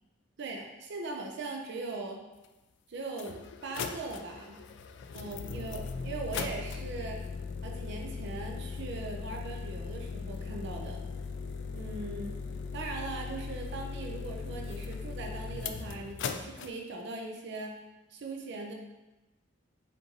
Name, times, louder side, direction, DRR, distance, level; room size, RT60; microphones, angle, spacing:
voice 1, 0.4-2.2 2.9-4.6 5.1-7.2 7.6-11.0 11.7-12.4 12.7-17.8 18.1-18.7, right 3 dB, 65° right, 2 dB, 0.5 m, -40 dB
sound 1, 2.4-2.5 3.1-16.7, left 5 dB, 65° left, 0.3 m, -39 dB
5.2 x 2.6 x 2.8 m, 1.1 s
head